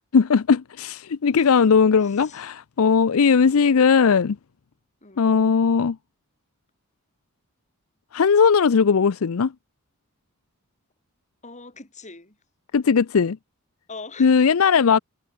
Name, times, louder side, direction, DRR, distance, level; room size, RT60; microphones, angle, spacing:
voice 1, 0.0-4.4 5.2-6.0 8.1-9.5 12.7-13.4 14.2-15.0, left 6 dB, 65° left, 0.5 m, -18 dB
voice 2, 1.3-2.4 5.0-5.3 11.4-12.4 13.9-14.6, left 3 dB, 35° left, 3.9 m, -43 dB
head